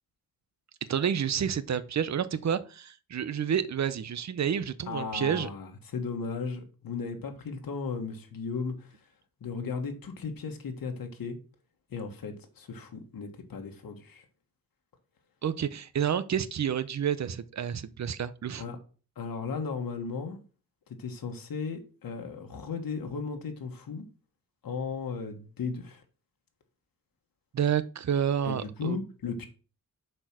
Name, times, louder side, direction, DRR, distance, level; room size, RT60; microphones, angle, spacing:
voice 1, 0.9-5.5 15.4-18.6 27.5-29.0, right 8 dB, 50° right, 0.7 m, -29 dB
voice 2, 4.9-9.0 9.4-11.4 11.9-14.2 18.6-18.8 19.1-20.4 21.0-24.0 24.6-26.0 28.4-29.5, left 5 dB, 85° left, 1.5 m, -36 dB
7.9 x 4.5 x 6.1 m
wide cardioid pair, 120°, 34 cm